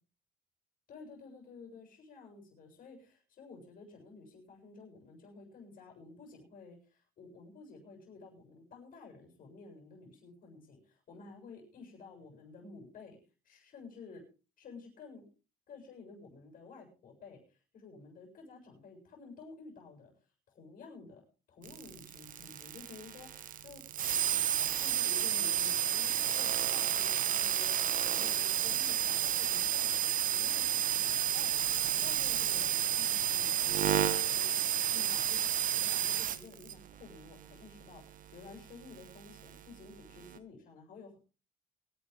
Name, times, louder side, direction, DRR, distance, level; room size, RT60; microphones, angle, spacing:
voice 1, 0.9-13.2 13.4-14.2 14.6-15.2 15.7-20.1 20.5-23.8 24.3-24.4 24.8-30.0 30.3-31.5 31.9-34.5 34.9-41.2, left 4 dB, 55° left, 1 dB, 7.4 m, -52 dB
sound 1, 21.6-39.6 40.1-40.4, right 10 dB, 55° right, 1.3 m, -31 dB
24.0 x 10.5 x 3.6 m, 0.34 s
cardioid pair, 110°, 17 cm